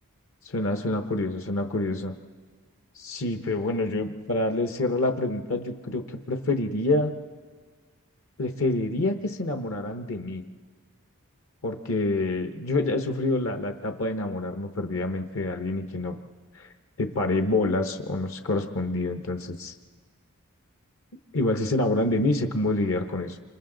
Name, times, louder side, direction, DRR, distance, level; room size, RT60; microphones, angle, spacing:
voice 1, 0.4-2.1 3.0-7.1 8.4-10.4 11.6-16.2 16.5-16.7 17.0-19.7 21.3-23.4, left 2 dB, 60° left, 6 dB, 0.9 m, -27 dB
28.0 x 26.5 x 3.9 m, 1.5 s
head